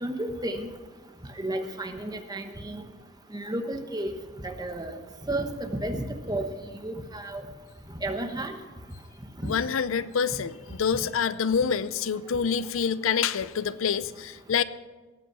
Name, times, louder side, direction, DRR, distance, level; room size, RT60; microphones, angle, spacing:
voice 1, 0.0-0.7 1.4-2.8 3.3-4.1 4.4-4.9 5.3-6.5 6.8-7.4 8.0-8.5 9.4-9.5, right 1 dB, 20° right, 6 dB, 1.1 m, -32 dB
voice 2, 9.4-14.6, left 6 dB, 75° left, 15 dB, 0.5 m, -27 dB
18.0 x 8.2 x 6.0 m, 1.3 s
head